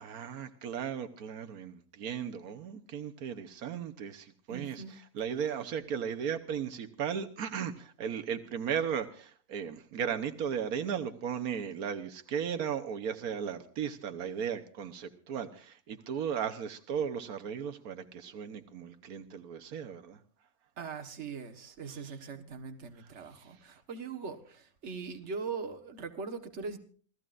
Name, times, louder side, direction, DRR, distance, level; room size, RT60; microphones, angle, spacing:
voice 1, 0.0-4.8 5.1-20.2 22.1-22.2 23.4-23.5, right 8 dB, 85° right, 1.5 m, -36 dB
voice 2, 4.5-5.0 20.8-26.8, right 5 dB, 50° right, 1.6 m, -41 dB
27.5 x 15.5 x 2.5 m
omnidirectional pair, 1.5 m